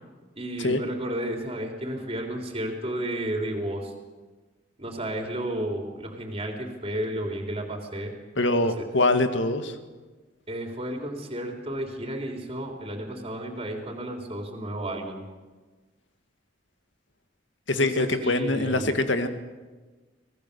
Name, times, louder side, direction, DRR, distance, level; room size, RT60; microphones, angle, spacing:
voice 1, 0.4-3.9 4.8-8.1 8.8-8.9 10.5-15.2 17.7-18.9, right 1 dB, 30° right, 2 dB, 3.7 m, -32 dB
voice 2, 8.4-9.8 17.7-19.3, left 2 dB, 75° left, 8 dB, 1.9 m, -24 dB
26.0 x 19.0 x 6.9 m, 1.3 s
head